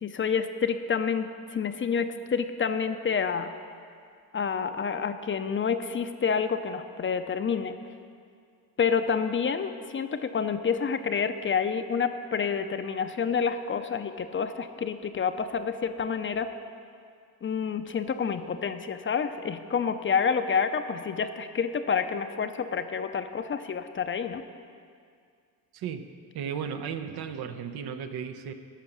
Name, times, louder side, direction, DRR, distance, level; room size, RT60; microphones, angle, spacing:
voice 1, 0.0-3.5 4.3-7.8 8.8-16.5 17.4-24.4, left 6 dB, 30° left, 9 dB, 0.6 m, -28 dB
voice 2, 25.7-26.1 26.3-28.5, right 7 dB, 70° right, 8 dB, 0.8 m, -35 dB
11.5 x 5.9 x 7.2 m, 2.2 s
cardioid pair, 90°, 40 cm